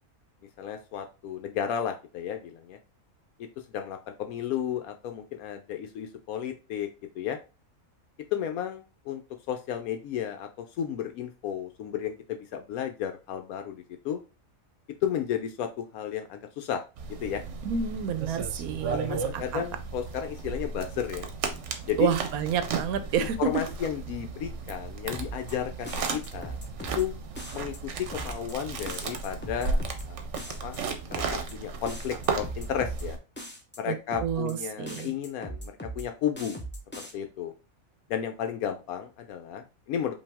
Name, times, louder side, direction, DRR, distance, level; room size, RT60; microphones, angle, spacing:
voice 1, 0.6-2.8 3.7-6.9 7.2-7.4 8.3-9.2 9.5-14.2 15.0-16.8 17.2-17.4 18.9-21.3 21.9-22.1 23.2-26.6 27.0-27.1 27.5-30.3 30.6-30.8 31.1-33.2 33.8-36.6 37.1-37.5 38.1-40.2, left 9 dB, 80° left, 6 dB, 1.0 m, -33 dB
sound 1, 17.0-33.2, right 4 dB, 60° right, 1.0 m, -35 dB
voice 2, 17.6-19.6 22.0-23.5 33.9-34.0 34.2-35.1, right 8 dB, 85° right, 9 dB, 1.1 m, -29 dB
sound 2, 25.1-25.5 25.9-27.0 27.4-27.8 28.1-28.5 28.9-30.0 30.4-30.8 31.1-31.5 31.9-33.0 33.4-33.8 34.1-34.5 34.9-36.0 36.4-37.1, right 1 dB, 10° left, 0.6 m, -39 dB
5.3 x 2.6 x 3.5 m, 0.30 s
omnidirectional pair, 1.5 m